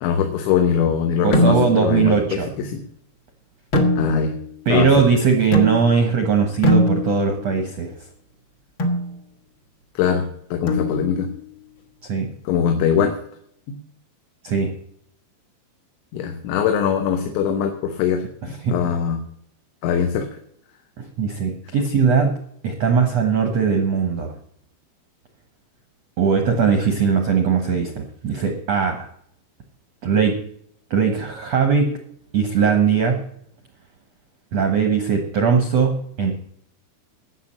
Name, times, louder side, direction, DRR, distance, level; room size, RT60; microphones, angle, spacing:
voice 1, 0.0-2.2 2.6-2.8 4.0-4.3 4.7-4.9 10.0-11.3 12.5-13.1 16.1-19.2 19.8-20.4, left 7 dB, 85° left, 5 dB, 3.5 m, -22 dB
voice 2, 1.2-2.5 4.6-7.9 12.0-12.3 14.4-14.7 18.6-18.8 21.0-22.4 22.6-24.3 26.2-29.1 30.0-30.3 30.9-32.0 32.3-33.3 34.5-36.3, right 5 dB, 80° right, 5 dB, 1.5 m, -19 dB
sound 1, 1.3-1.9 3.7-4.5 5.5-6.1 6.6-7.4 8.8-9.1 10.7-11.3, left 1 dB, 55° left, 1.3 m, -21 dB
12.0 x 7.9 x 7.5 m, 0.67 s
omnidirectional pair, 5.1 m